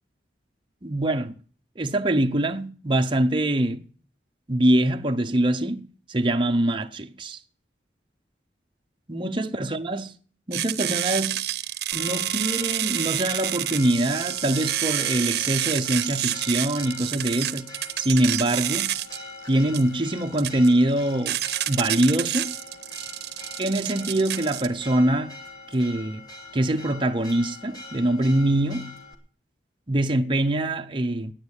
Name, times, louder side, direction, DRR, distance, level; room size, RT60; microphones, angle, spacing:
voice 1, 0.8-1.3 1.8-3.9 4.5-7.4 9.1-10.1 10.5-11.4 11.9-19.0 19.5-22.5 23.6-25.4 25.7-26.2 26.5-29.0 29.9-31.3, right 1 dB, 30° right, 0.7 m, -24 dB
sound 1, 10.5-24.7, right 13 dB, 65° right, 0.8 m, -29 dB
Church bell, 11.9-29.1, left 1 dB, 25° left, 1.9 m, -42 dB
9.6 x 9.0 x 9.7 m
head